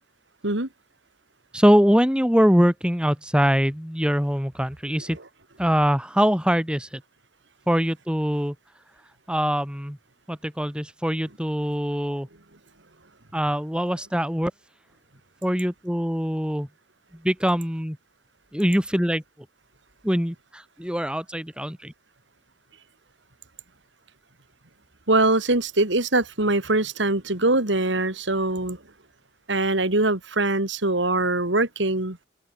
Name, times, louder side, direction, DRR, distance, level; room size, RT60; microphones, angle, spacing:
voice 1, 1.5-5.2 5.6-7.0 7.7-8.5 9.3-10.0 10.3-12.3 13.3-14.5 15.4-16.7 17.2-18.0 18.5-19.2 20.0-21.9, equal, 5° right, 2.5 m, -23 dB
voice 2, 25.1-28.8 29.5-32.2, right 2 dB, 85° right, 3.4 m, -22 dB
open air
head